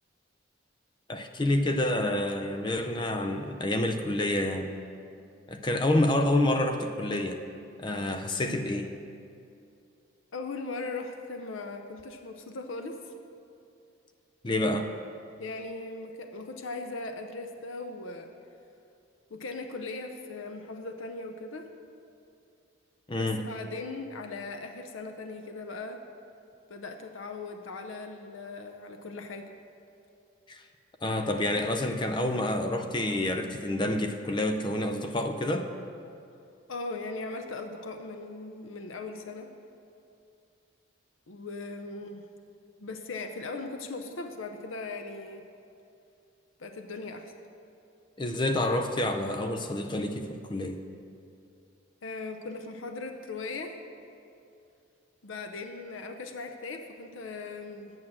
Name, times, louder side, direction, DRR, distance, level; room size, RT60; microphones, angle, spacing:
voice 1, 1.1-4.7 5.5-7.4 7.8-8.9 14.4-14.9 23.1-23.4 30.5-30.6 31.0-35.7 48.2-50.8, left 1 dB, 25° left, 6 dB, 0.4 m, -28 dB
voice 2, 10.3-13.1 15.4-18.3 19.3-21.7 23.2-26.0 26.7-29.5 36.7-39.5 41.3-42.2 42.8-45.4 46.6-47.3 52.0-53.7 55.2-57.9, left 3 dB, 75° left, 5 dB, 0.6 m, -39 dB
8.7 x 6.2 x 7.3 m, 2.5 s
head